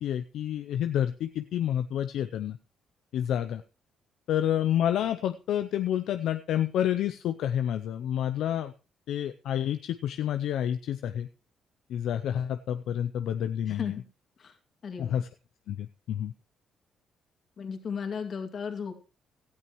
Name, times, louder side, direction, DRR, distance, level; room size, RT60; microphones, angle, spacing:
voice 1, 0.0-2.6 3.1-3.6 4.3-8.7 9.1-11.3 11.9-14.0 15.0-15.3 15.7-16.3, left 10 dB, 80° left, 10 dB, 0.5 m, -29 dB
voice 2, 13.7-14.0 14.4-14.6 14.8-15.2 17.6-18.9, left 6 dB, 55° left, 5 dB, 2.3 m, -35 dB
17.0 x 12.5 x 3.1 m, 0.33 s
cardioid pair, 90°, 0 cm